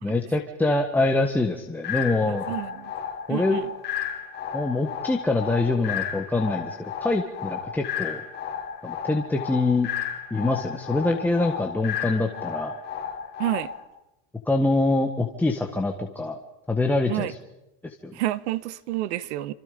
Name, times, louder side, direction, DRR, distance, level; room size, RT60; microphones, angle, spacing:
voice 1, 0.0-2.5 3.3-3.6 4.5-8.2 8.8-9.9 10.3-12.7 14.5-16.3 16.7-17.4 17.8-18.1, left 2 dB, 5° left, 1.6 m, -25 dB
sound 1, 1.8-13.8, left 8 dB, 30° left, 5.9 m, -33 dB
voice 2, 2.5-2.9 3.3-3.7 13.4-13.7 17.1-17.3 18.1-19.5, right 15 dB, 65° right, 1.5 m, -29 dB
28.5 x 27.0 x 5.3 m
supercardioid pair, 170°, 36 cm